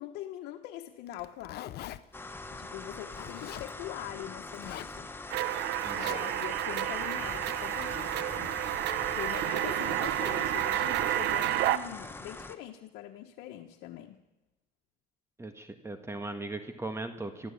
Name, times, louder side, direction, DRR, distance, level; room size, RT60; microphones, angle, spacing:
voice 1, 0.0-2.0 2.5-5.1 6.0-14.2, left 12 dB, 90° left, 2 dB, 1.3 m, -43 dB
Zipper (clothing), 1.1-2.0 3.1-3.7 4.5-5.0 5.9-6.2, left 14 dB, 70° left, 0.9 m, -42 dB
sound 1, 2.1-12.6, left 2 dB, 15° left, 1.4 m, -42 dB
sound 2, 5.3-11.8, right 13 dB, 85° right, 1.0 m, -30 dB
voice 2, 5.8-6.3 15.4-17.5, right 2 dB, 15° right, 7 dB, 1.8 m, -39 dB
22.5 x 14.0 x 8.6 m, 1.0 s
cardioid pair, 110°, 17 cm